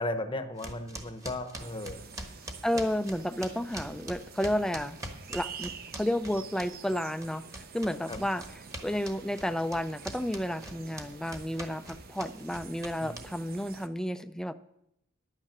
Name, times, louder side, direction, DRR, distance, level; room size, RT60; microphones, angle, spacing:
voice 1, 0.0-2.0 8.1-8.2 13.0-13.1, left 1 dB, 25° left, 9 dB, 0.9 m, -35 dB
sound 1, 0.6-6.9 7.2-13.6, right 1 dB, 15° right, 1.2 m, -43 dB
sound 2, 1.6-13.9, right 6 dB, 45° right, 0.7 m, -48 dB
voice 2, 2.6-5.0 5.3-14.5, equal, 5° left, 12 dB, 0.4 m, -32 dB
10.5 x 9.1 x 6.0 m, 0.79 s
head